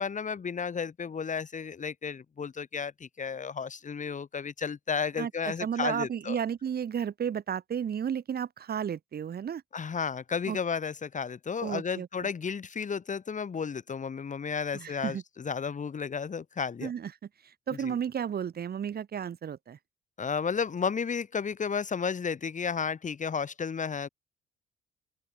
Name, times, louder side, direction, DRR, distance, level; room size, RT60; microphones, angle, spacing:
voice 1, 0.0-6.4 9.7-16.9 17.7-17.9 20.2-24.1, left 6 dB, 40° left, 2.1 m, -33 dB
voice 2, 5.2-9.6 10.5-10.6 11.6-12.1 14.7-15.2 16.8-17.1 17.7-19.8, right 8 dB, 50° right, 2.0 m, -33 dB
open air
cardioid pair, 90°, 20 cm